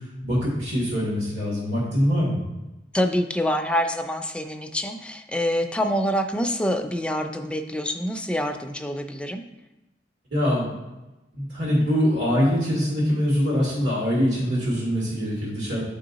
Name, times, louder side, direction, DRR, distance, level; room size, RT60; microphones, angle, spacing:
voice 1, 0.2-2.4 10.3-10.7 11.3-15.8, equal, 80° right, -6 dB, 2.4 m, -23 dB
voice 2, 2.9-9.4, equal, 5° left, 6 dB, 0.4 m, -26 dB
9.2 x 3.7 x 3.9 m, 1.0 s
head